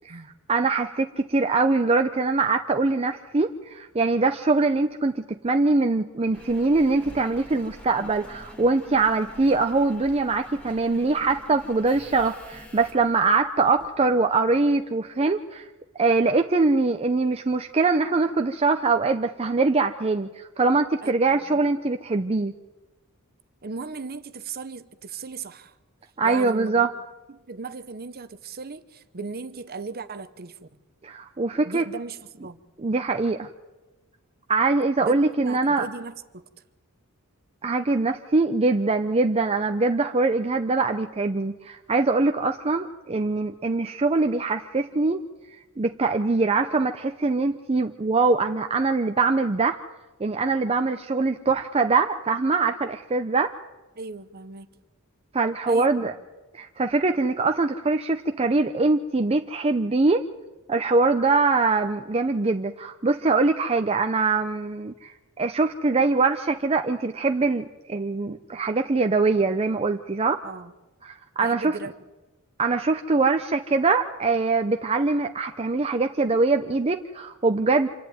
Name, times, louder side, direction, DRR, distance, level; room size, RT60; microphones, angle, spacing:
voice 1, 0.5-15.7 16.0-22.5 26.2-26.9 31.0-31.8 32.8-33.5 34.5-35.9 37.6-45.2 45.8-49.8 50.2-53.5 55.3-56.1 56.5-60.2 60.7-70.4 71.0-71.8 72.6-77.9, right 3 dB, 25° right, 0.6 m, -23 dB
Engine, 6.3-14.2 14.8-14.9, equal, 5° left, 1.8 m, -46 dB
voice 2, 21.0-21.6 23.6-25.7 26.2-26.9 27.3-30.6 31.6-32.6 35.0-35.2 35.4-36.4 54.0-54.7 55.7-56.1 70.4-70.7 71.4-71.9, right 4 dB, 45° right, 0.9 m, -37 dB
26.5 x 11.0 x 9.4 m
head